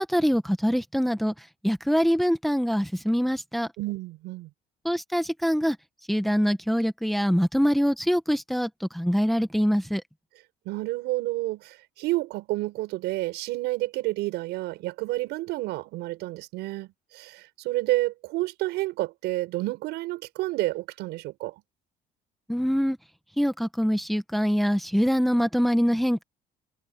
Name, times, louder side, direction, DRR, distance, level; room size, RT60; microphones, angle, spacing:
voice 1, 0.0-3.7 4.8-5.8 6.1-10.0 22.5-23.0 23.4-26.2, equal, ahead, 1.4 m, -24 dB
voice 2, 3.8-4.5 10.7-21.5, right 19 dB, 90° right, 7.3 m, -30 dB
cardioid pair, 110°, 17 cm